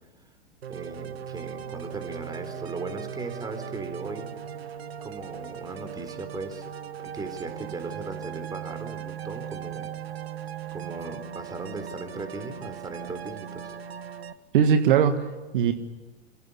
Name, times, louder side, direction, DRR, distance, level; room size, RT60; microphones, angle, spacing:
sound 1, 0.6-14.3, right 9 dB, 70° right, 1.5 m, -38 dB
voice 1, 0.7-4.3 5.0-6.7 7.1-9.9 10.7-13.8, right 3 dB, 10° right, 7 dB, 3.8 m, -37 dB
voice 2, 14.5-15.7, right 7 dB, 50° right, 7 dB, 1.7 m, -21 dB
28.0 x 17.0 x 9.9 m, 1.2 s
figure-of-eight pair, 100°, 32 cm